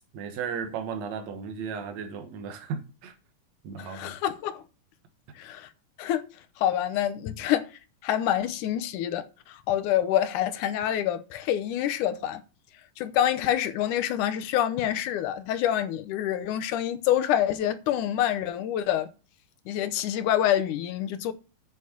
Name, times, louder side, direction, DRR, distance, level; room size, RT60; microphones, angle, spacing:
voice 1, 0.1-3.1 3.6-4.2, right 6 dB, 65° right, 2.5 m, -35 dB
voice 2, 3.8-4.6 5.4-5.7 6.0-6.2 6.6-7.7 8.0-12.4 13.0-19.1 19.7-21.3, left 11 dB, 90° left, 2.4 m, -27 dB
8.0 x 6.6 x 7.0 m
omnidirectional pair, 3.5 m